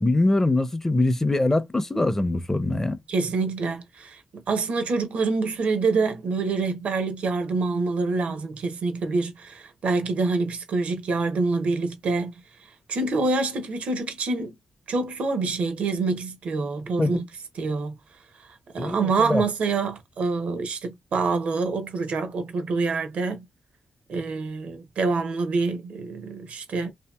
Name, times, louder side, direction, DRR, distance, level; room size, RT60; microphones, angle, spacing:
voice 1, 0.0-3.0 17.0-17.2 18.8-19.5, left 2 dB, 15° left, 0.5 m, -23 dB
voice 2, 3.1-12.3 12.9-14.5 14.9-17.2 17.6-17.9 18.7-23.4 24.1-26.9, right 3 dB, 75° right, 0.6 m, -26 dB
2.7 x 2.7 x 2.3 m
cardioid pair, 70°, 2 cm